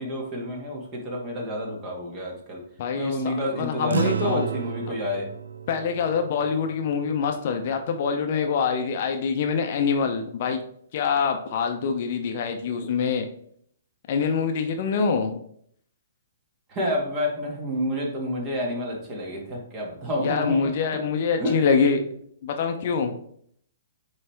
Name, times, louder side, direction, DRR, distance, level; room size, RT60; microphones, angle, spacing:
voice 1, 0.0-2.6 3.0-5.3 16.7-20.7 21.4-21.6, left 1 dB, 30° right, -1 dB, 1.9 m, -29 dB
voice 2, 2.8-4.5 4.9-5.0 5.7-10.6 10.9-13.3 14.1-15.4 20.2-22.1 22.4-23.2, left 5 dB, 45° left, 5 dB, 0.7 m, -25 dB
sound 1, 3.9-8.6, right 8 dB, 65° right, 0.4 m, -33 dB
8.6 x 3.2 x 3.4 m, 0.64 s
figure-of-eight pair, 120°, 0 cm